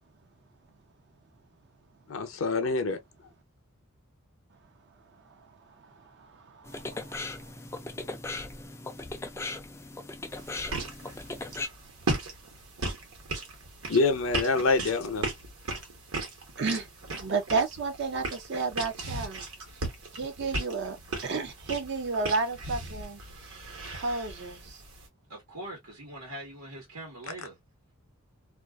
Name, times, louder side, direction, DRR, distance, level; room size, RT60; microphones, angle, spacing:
voice 1, 2.1-3.0 13.9-15.3, left 3 dB, 60° left, 0.6 m, -26 dB
voice 2, 5.8-7.3 16.6-16.9 17.2-19.4 20.1-21.0 21.2-23.2 23.9-24.8, right 4 dB, 50° right, 0.5 m, -32 dB
sound 1, 6.6-11.7, left 2 dB, 10° left, 0.3 m, -38 dB
sound 2, 10.3-25.1, right 2 dB, 70° right, 1.1 m, -37 dB
voice 3, 25.3-27.6, right 1 dB, 90° right, 1.1 m, -42 dB
2.4 x 2.3 x 2.2 m
head